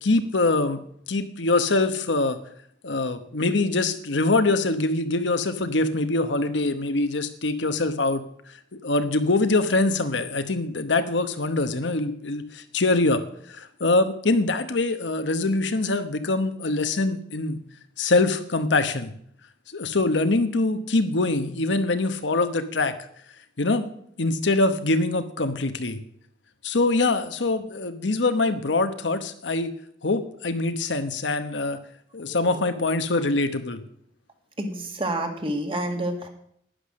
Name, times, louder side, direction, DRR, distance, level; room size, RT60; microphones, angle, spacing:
voice 1, 0.0-0.8 1.1-2.4 2.8-8.2 8.7-17.6 18.0-19.1 19.7-22.9 23.6-23.9 24.2-26.0 26.6-29.7 30.0-31.8 32.1-33.8, left 2 dB, 80° left, 9 dB, 1.1 m, -24 dB
voice 2, 32.3-32.8 34.6-36.3, right 1 dB, 30° right, 4 dB, 1.9 m, -29 dB
11.5 x 10.0 x 6.4 m, 0.68 s
head